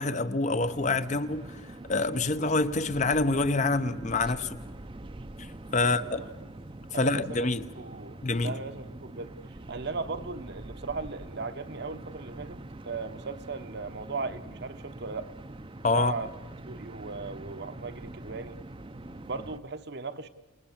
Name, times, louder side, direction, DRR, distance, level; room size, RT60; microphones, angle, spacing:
voice 1, 0.0-1.6 1.9-4.6 5.4-5.5 5.7-6.2 6.9-7.6 8.2-8.5 15.8-16.1, left 3 dB, 35° left, 0.7 m, -26 dB
sound 1, 0.6-19.6, right 2 dB, 25° right, 0.6 m, -44 dB
voice 2, 5.8-6.3 6.9-7.5 7.7-9.4 9.7-15.3 15.9-16.3 16.6-18.6 19.2-20.3, right 4 dB, 55° right, 1.0 m, -37 dB
28.0 x 19.5 x 7.2 m
head